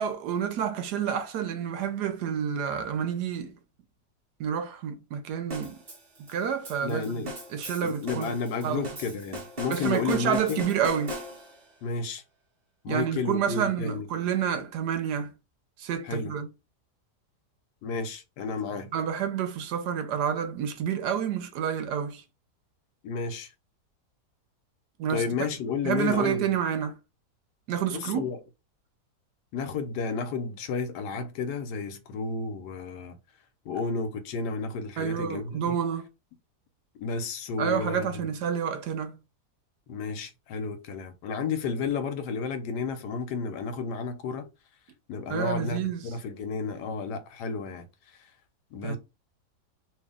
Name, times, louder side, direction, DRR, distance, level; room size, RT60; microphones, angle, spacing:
voice 1, 0.0-3.6 4.4-5.8 6.3-8.4 8.6-8.9 9.7-11.2 12.9-15.3 15.8-16.5 18.9-22.2 25.0-25.2 25.8-26.9 27.7-28.3 35.0-36.1 37.6-39.2 45.3-46.1 48.8-49.0, right 8 dB, 80° right, 1.3 m, -29 dB
sound 1, 5.5-11.7, equal, 35° right, 1.3 m, -40 dB
voice 2, 6.8-7.3 7.8-10.6 11.8-12.2 12.8-14.1 16.0-16.4 17.8-18.9 23.0-23.5 25.1-26.4 27.9-28.4 29.5-33.2 33.6-35.8 37.0-38.2 39.9-44.5 45.1-47.8 48.7-49.0, left 5 dB, 85° left, 1.2 m, -32 dB
3.0 x 2.7 x 3.5 m
omnidirectional pair, 1.8 m